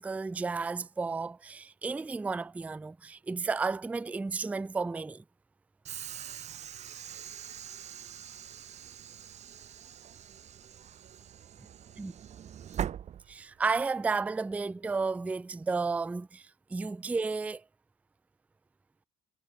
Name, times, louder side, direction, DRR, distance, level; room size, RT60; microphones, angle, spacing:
voice 1, 0.0-5.2 12.0-12.1 13.3-17.6, right 4 dB, 10° right, 0.3 m, -32 dB
Train / Sliding door, 5.8-13.8, right 9 dB, 40° right, 0.7 m, -42 dB
voice 2, 6.1-10.3 11.0-12.8, right 14 dB, 75° right, 7.6 m, -69 dB
cardioid pair, 110°, 17 cm